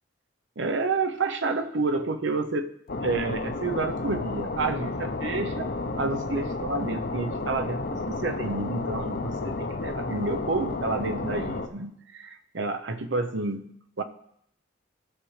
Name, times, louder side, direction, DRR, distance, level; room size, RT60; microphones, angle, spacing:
voice 1, 0.6-2.7 3.0-5.7 6.0-14.0, right 3 dB, 65° right, 9 dB, 0.7 m, -29 dB
sound 1, 2.9-11.7, left 3 dB, 50° left, 0.6 m, -32 dB
15.0 x 6.3 x 3.2 m, 0.72 s
head